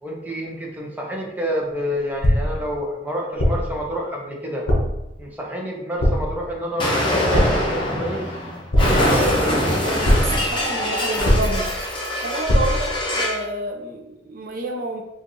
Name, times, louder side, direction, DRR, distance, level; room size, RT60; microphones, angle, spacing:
voice 1, 0.0-4.7 5.2-8.3, equal, 10° right, -2 dB, 0.6 m, -28 dB
sound 1, 2.2-2.7 3.4-3.8 4.7-5.1 6.0-6.4 7.3-7.8 8.7-9.3 10.0-10.5 11.2-11.8 12.5-12.9, equal, 60° left, 0.8 m, -20 dB
Explosion, 6.8-13.4, left 1 dB, 25° left, 0.8 m, -23 dB
voice 2, 8.8-11.8 12.2-15.0, right 2 dB, 50° right, 1 dB, 0.5 m, -28 dB
4.4 x 2.4 x 2.6 m, 0.92 s
head